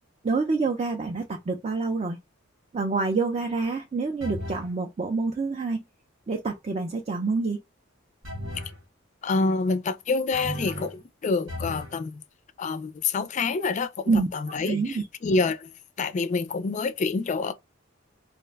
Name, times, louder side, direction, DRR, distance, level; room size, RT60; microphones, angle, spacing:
voice 1, 0.2-2.2 2.7-5.8 6.3-7.6 14.1-14.3 14.7-15.0, right 4 dB, 35° right, 0.4 m, -27 dB
sound 1, 4.2-4.7 8.2-8.8 10.3-11.0 11.5-12.0, equal, 90° right, 1.0 m, -35 dB
voice 2, 9.2-12.2 12.6-15.7 16.0-17.5, left 4 dB, 40° left, 0.4 m, -27 dB
2.4 x 2.2 x 3.3 m
head